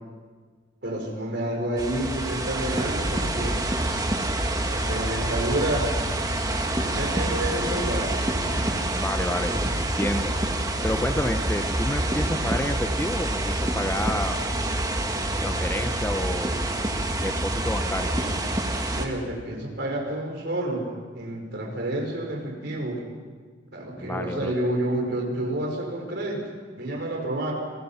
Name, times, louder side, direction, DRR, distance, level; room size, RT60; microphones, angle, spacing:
voice 1, 0.8-3.7 4.6-5.9 6.9-8.1 18.9-23.0 23.7-26.4 26.8-27.5, right 1 dB, 55° right, 1 dB, 5.1 m, -29 dB
sound 1, 1.8-19.1, right 1 dB, 20° right, 1.7 m, -27 dB
voice 2, 8.9-10.3 10.8-14.4 15.4-16.5 17.2-18.1 24.0-24.5, left 1 dB, 10° left, 7 dB, 0.8 m, -29 dB
29.5 x 20.5 x 5.7 m, 1.5 s
head